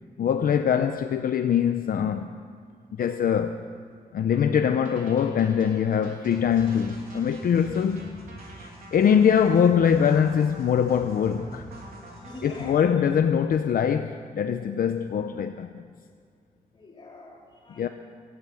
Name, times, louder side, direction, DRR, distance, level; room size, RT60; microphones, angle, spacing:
voice 1, 0.2-2.3 3.0-3.6 4.1-8.2 8.6-11.7 12.4-15.8 17.8-17.9, left 8 dB, 70° left, 0.6 m, -23 dB
sound 1, 4.3-12.9, right 1 dB, 60° right, 3.0 m, -48 dB
sound 2, 6.3-12.9, right 1 dB, 80° right, 3.3 m, -47 dB
voice 2, 12.1-13.0 16.7-17.9, left 1 dB, 30° left, 3.5 m, -44 dB
16.0 x 13.0 x 7.1 m
wide cardioid pair, 170°, 15 cm